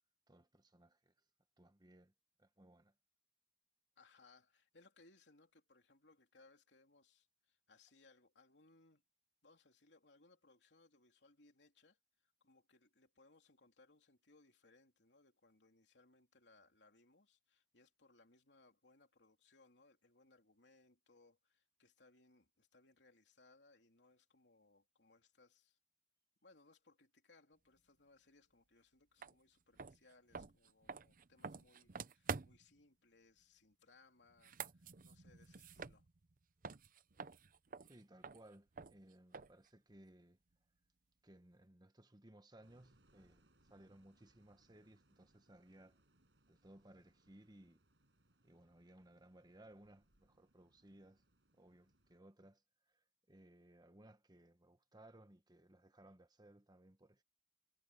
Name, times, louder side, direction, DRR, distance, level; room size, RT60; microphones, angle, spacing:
voice 1, 0.3-1.1 1.6-2.1 2.4-2.9 37.8-40.4 41.2-46.0 46.4-47.8 48.4-51.2 51.5-57.2, right 1 dB, 25° right, 1.4 m, -63 dB
voice 2, 4.0-9.0 9.4-25.8 26.4-36.1, left 3 dB, 85° left, 3.3 m, -69 dB
sound 1, 29.2-29.3 29.7-32.8 34.3-36.4 36.6-39.7, right 5 dB, 50° right, 0.8 m, -48 dB
sound 2, 42.6-52.2, right 1 dB, 85° right, 5.7 m, -76 dB
head